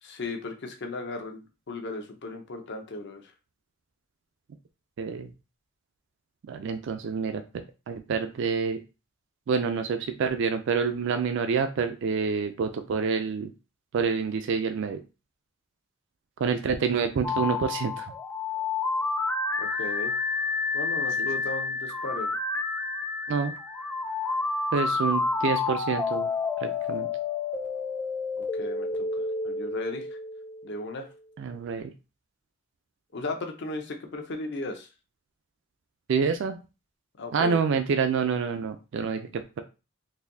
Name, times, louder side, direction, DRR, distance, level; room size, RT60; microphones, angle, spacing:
voice 1, 0.0-3.2 19.6-20.1 20.7-22.4 28.4-30.1 30.6-31.1 33.1-34.9 37.2-37.6, left 2 dB, 60° left, 5 dB, 0.7 m, -36 dB
voice 2, 5.0-5.3 6.5-8.8 9.5-13.5 13.9-15.0 16.4-18.1 21.2-21.3 23.3-23.5 24.7-26.3 26.6-27.1 31.4-31.9 36.1-36.6 37.3-39.6, right 5 dB, 65° right, 8 dB, 0.4 m, -27 dB
sound 1, 17.2-31.1, left 4 dB, 10° left, 0.3 m, -30 dB
4.0 x 2.6 x 2.6 m, 0.30 s
head